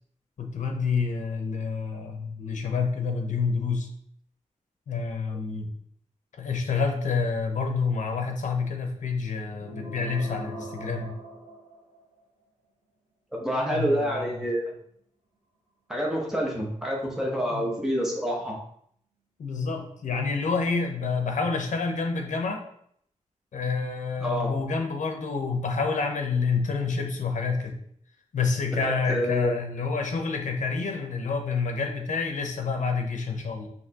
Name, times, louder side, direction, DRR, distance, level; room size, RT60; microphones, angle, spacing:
voice 1, 0.4-3.9 4.9-5.7 6.3-11.1 13.7-14.4 17.5-17.7 19.4-22.6 23.5-27.7 28.3-33.7, left 4 dB, 70° left, 3 dB, 0.8 m, -28 dB
sound 1, 9.6-12.2, right 1 dB, 80° right, 1.3 m, -41 dB
voice 2, 13.3-14.7 15.9-18.5 24.2-24.6 28.8-29.5, equal, 5° right, -2 dB, 0.9 m, -27 dB
5.6 x 3.1 x 2.9 m, 0.67 s
wide cardioid pair, 165°, 13 cm